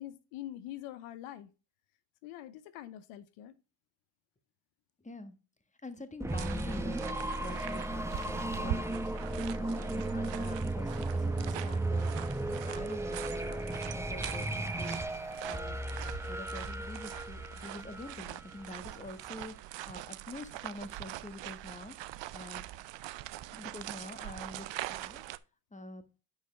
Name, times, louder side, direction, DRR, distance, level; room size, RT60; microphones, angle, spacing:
voice 1, 0.0-1.5 2.2-3.6, left 13 dB, 85° left, 0.8 m, -44 dB
voice 2, 5.0-5.4 5.8-15.8 16.3-19.5 19.9-22.7 23.5-25.2 25.7-26.0, left 2 dB, 15° left, 1.6 m, -46 dB
sound 1, 6.2-18.9, right 2 dB, 5° right, 0.9 m, -35 dB
sound 2, 6.3-25.4, right 14 dB, 60° right, 0.6 m, -43 dB
9.6 x 5.7 x 3.3 m
supercardioid pair, 65°, 49 cm